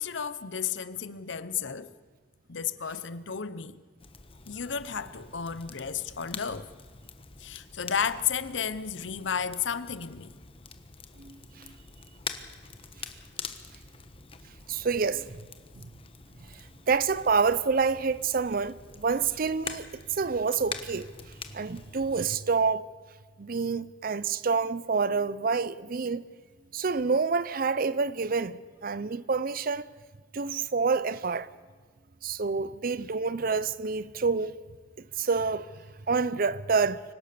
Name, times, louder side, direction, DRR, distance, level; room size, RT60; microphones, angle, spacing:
voice 1, 0.0-1.9 2.5-3.8 4.5-6.7 7.4-10.3, left 7 dB, 90° left, 0.9 m, -33 dB
Crackle, 4.0-22.2, left 5 dB, 30° left, 1.2 m, -45 dB
voice 2, 11.2-11.7 14.7-15.4 15.8-15.9 16.9-21.1 21.5-22.9 23.4-26.2 26.7-29.8 30.3-31.5 32.2-34.6 35.2-35.7 36.1-37.0, right 5 dB, 50° right, 0.6 m, -28 dB
25.0 x 17.5 x 6.9 m
head